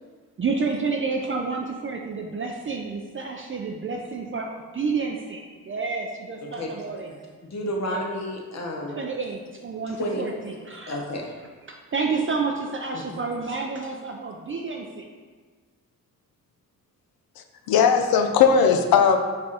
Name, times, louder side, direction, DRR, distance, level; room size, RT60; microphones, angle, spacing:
voice 1, 0.4-7.1 7.8-8.0 9.0-11.0 11.7-15.1, right 4 dB, 35° right, 1 dB, 0.4 m, -30 dB
voice 2, 6.4-6.7 7.0-7.1 7.4-9.0 10.0-10.2 10.9-11.3 12.9-13.2, equal, 45° left, 0 dB, 1.0 m, -31 dB
voice 3, 17.4-19.2, left 6 dB, 75° left, 6 dB, 0.5 m, -18 dB
4.6 x 2.4 x 4.2 m, 1.5 s
supercardioid pair, 50°, 36 cm